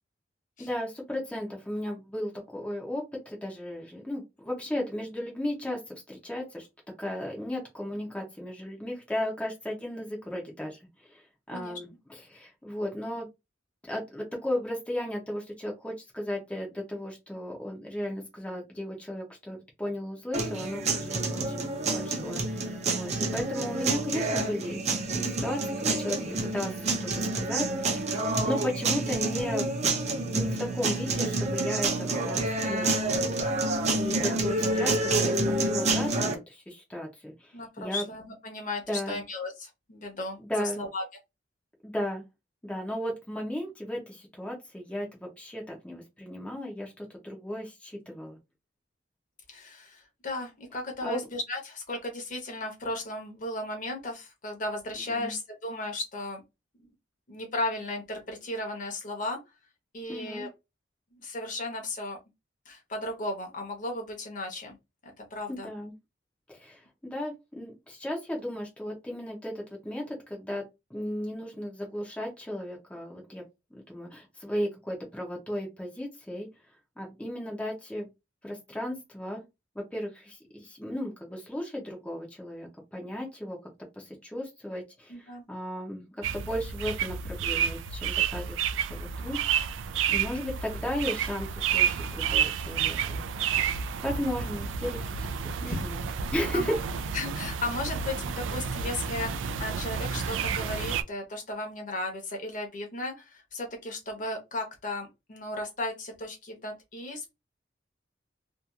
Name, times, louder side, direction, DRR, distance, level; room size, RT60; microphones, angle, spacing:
voice 1, 0.6-6.7 7.0-13.3 13.9-24.8 25.0-25.6 26.0-28.1 28.4-29.7 30.3-32.9 33.9-38.0 38.9-39.2 40.4-40.8 41.8-42.2 42.6-48.4 51.0-51.3 55.1-55.3 60.1-60.5 65.5-65.9 66.5-70.6 70.9-73.4 73.7-76.5 77.0-78.1 78.4-79.4 79.9-83.6 84.0-86.1 86.3-88.6 88.9-89.4 90.1-93.2 93.5-96.0 96.3-96.8, left 1 dB, 5° left, -1 dB, 0.5 m, -35 dB
sound 1, 20.3-36.3, right 2 dB, 35° right, 0.6 m, -28 dB
voice 2, 37.5-41.0 49.5-56.4 57.3-59.4 59.9-60.5 61.1-62.2 62.7-64.8 65.0-65.7 85.1-85.4 93.7-93.8 95.6-95.8 96.5-96.8 97.1-107.3, left 2 dB, 45° left, 3 dB, 0.9 m, -35 dB
Suburban Bird, 86.2-101.0, right 7 dB, 80° right, 0.3 m, -30 dB
2.8 x 2.3 x 2.3 m, 0.23 s
head